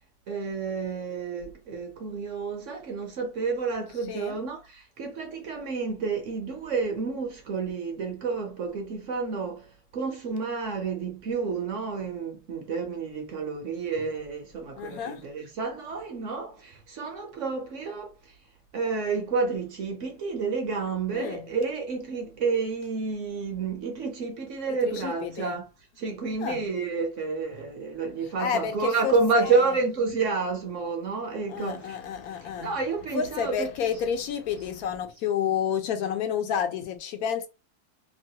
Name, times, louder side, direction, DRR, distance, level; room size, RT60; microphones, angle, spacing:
voice 1, 0.3-18.3 18.7-25.6 26.0-32.0 32.6-33.7, right 4 dB, 60° right, 0.9 m, -30 dB
voice 2, 4.1-4.4 14.8-15.2 21.1-21.5 24.9-25.5 26.4-26.6 28.4-29.5 31.5-32.7 33.1-37.5, left 8 dB, 75° left, 1.0 m, -30 dB
3.0 x 2.2 x 2.7 m
omnidirectional pair, 1.6 m